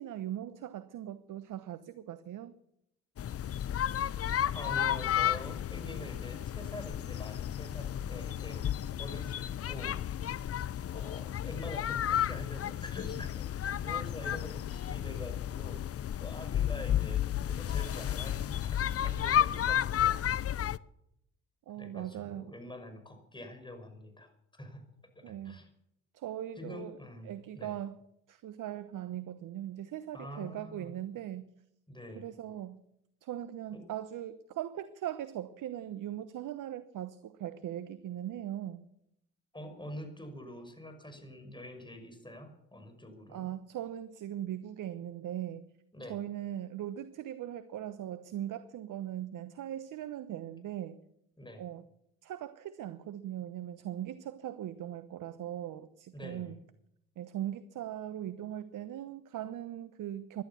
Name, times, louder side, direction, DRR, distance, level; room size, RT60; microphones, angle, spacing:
voice 1, 0.0-2.5 14.2-14.4 21.7-22.5 25.2-25.6 26.1-27.0 27.2-28.0 28.3-31.5 32.2-32.8 33.2-38.8 43.3-45.6 46.1-51.0 51.6-51.8 52.2-56.6 57.2-60.4, right 11 dB, 65° right, 13 dB, 1.0 m, -40 dB
sound 1, 3.2-20.8, left 10 dB, 45° left, 0.6 m, -32 dB
voice 2, 4.5-8.6 8.9-10.0 10.9-15.8 16.2-20.2 21.8-24.9 25.2-25.7 26.6-27.7 30.1-31.0 31.9-32.3 33.7-33.8 39.5-43.5 45.9-46.2 51.4-51.6 56.1-56.5, left 1 dB, 15° left, 6 dB, 6.0 m, -46 dB
17.0 x 11.5 x 7.1 m, 0.77 s
hypercardioid pair, 50°, 34 cm